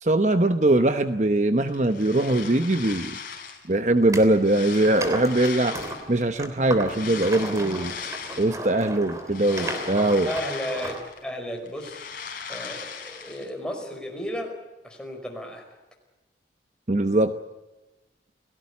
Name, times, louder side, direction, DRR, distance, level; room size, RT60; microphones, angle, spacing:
voice 1, 0.0-3.2 3.7-5.8 6.1-8.0 8.4-10.3 16.9-17.3, right 1 dB, 40° right, 9 dB, 1.0 m, -21 dB
sound 1, 1.7-3.7 4.1-6.2 6.8-8.7 9.1-11.3 11.6-13.5, left 6 dB, 50° left, 4.4 m, -38 dB
sound 2, 4.0-4.3 4.7-11.1, right 1 dB, 20° right, 3.3 m, -35 dB
voice 2, 10.3-12.1 12.5-14.6 14.8-15.7, equal, 5° left, 2 dB, 5.1 m, -34 dB
29.5 x 18.0 x 8.4 m, 1.1 s
head